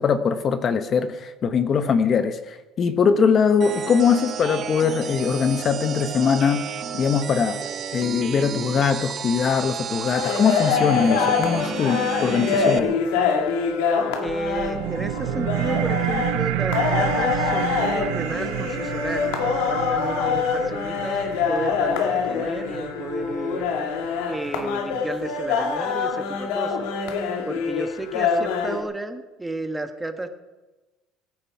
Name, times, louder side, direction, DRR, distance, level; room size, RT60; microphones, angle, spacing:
voice 1, 0.0-7.6 7.9-13.0, left 6 dB, 40° left, 10 dB, 1.1 m, -22 dB
sound 1, 3.6-12.8, right 7 dB, 40° right, 1.2 m, -32 dB
sound 2, 10.1-28.8, left 6 dB, 85° left, 2.1 m, -25 dB
voice 2, 14.2-23.6 24.3-26.9 27.5-30.3, right 2 dB, 10° right, 7 dB, 1.4 m, -32 dB
sound 3, 14.3-25.3, right 16 dB, 80° right, 0.8 m, -30 dB
23.5 x 10.0 x 4.8 m, 1.2 s
cardioid pair, 120°, 0 cm